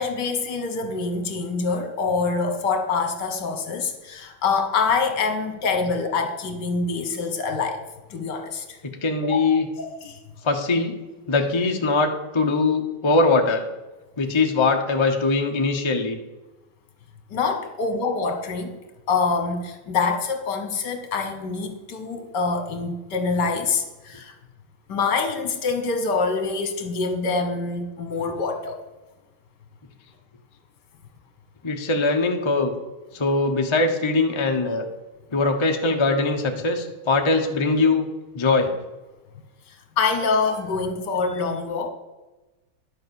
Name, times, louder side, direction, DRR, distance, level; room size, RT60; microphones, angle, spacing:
voice 1, 0.0-7.8 8.1-8.8 9.2-10.2 17.3-18.8 19.1-24.3 24.9-28.8 39.7-41.9, left 4 dB, 60° left, 5 dB, 1.8 m, -25 dB
voice 2, 9.0-9.7 10.4-10.9 11.3-13.6 14.2-16.2 31.6-32.7 33.1-34.9 35.3-38.0 38.3-38.7, left 3 dB, 25° left, 3 dB, 0.6 m, -21 dB
11.0 x 6.8 x 7.0 m, 1.1 s
omnidirectional pair, 2.2 m